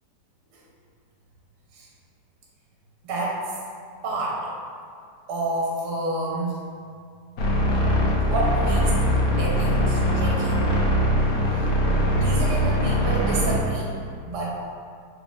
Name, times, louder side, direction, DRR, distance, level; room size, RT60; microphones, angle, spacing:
voice 1, 3.0-3.5 4.0-4.4 5.3-6.6 8.3-9.0 9.4-10.6 11.4-11.7 12.2-14.0 14.3-14.6, right 2 dB, 80° right, -4 dB, 1.2 m, -29 dB
sound 1, 7.4-13.6, equal, 65° left, 0.9 m, -21 dB
3.2 x 2.3 x 4.0 m, 2.3 s
omnidirectional pair, 1.8 m